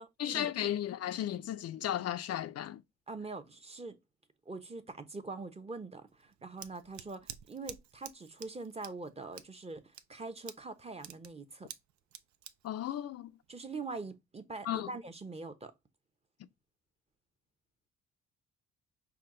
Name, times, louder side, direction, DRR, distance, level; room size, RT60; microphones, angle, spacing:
voice 1, 0.2-2.8 12.6-13.3 14.7-14.9, left 11 dB, 55° left, 0.5 m, -35 dB
voice 2, 3.1-4.0 4.5-11.7 13.5-15.7, right 3 dB, 20° right, 0.8 m, -43 dB
Scissors, 6.1-13.8, right 10 dB, 70° right, 0.6 m, -51 dB
5.7 x 2.3 x 3.7 m
cardioid pair, 90°, 30 cm